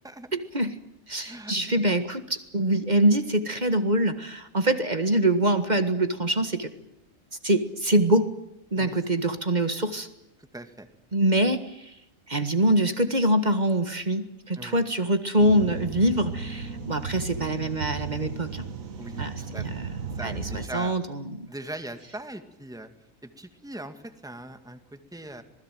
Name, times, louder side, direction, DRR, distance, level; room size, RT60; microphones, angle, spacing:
voice 1, 0.3-0.7 1.1-6.7 7.4-8.3 8.7-10.1 11.1-11.9 12.3-18.7 19.2-19.9 20.2-21.5, right 1 dB, 35° right, 9 dB, 1.9 m, -24 dB
voice 2, 1.2-1.6 8.8-9.0 10.5-10.9 14.6-14.8 19.0-19.7 20.2-21.0 21.5-22.9 23.4-25.4, right 1 dB, 5° right, 8 dB, 2.0 m, -40 dB
sound 1, 15.4-20.7, right 5 dB, 80° right, 2.1 m, -35 dB
27.0 x 20.5 x 9.2 m, 0.78 s
omnidirectional pair, 1.4 m